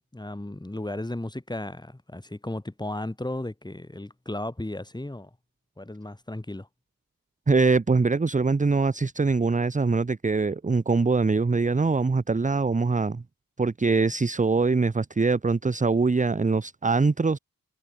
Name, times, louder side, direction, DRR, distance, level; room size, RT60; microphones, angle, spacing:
voice 1, 0.1-5.3 5.8-6.7, left 1 dB, 10° left, 6.9 m, -35 dB
voice 2, 7.5-13.2 13.6-17.4, right 4 dB, 20° right, 0.9 m, -23 dB
wide cardioid pair, 160°, 35 cm